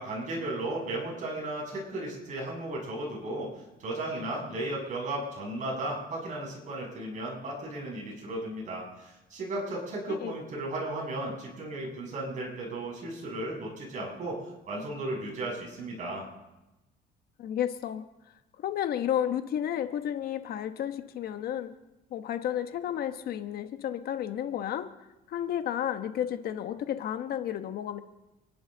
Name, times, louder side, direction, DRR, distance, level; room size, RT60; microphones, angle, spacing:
voice 1, 0.0-14.4 14.7-16.2, right 1 dB, 45° right, -2 dB, 6.8 m, -35 dB
voice 2, 17.4-18.1 18.6-21.7 22.1-24.9 25.3-28.0, left 10 dB, 65° left, 8 dB, 1.2 m, -32 dB
29.0 x 11.0 x 3.9 m, 1.0 s
cardioid pair, 110°, 17 cm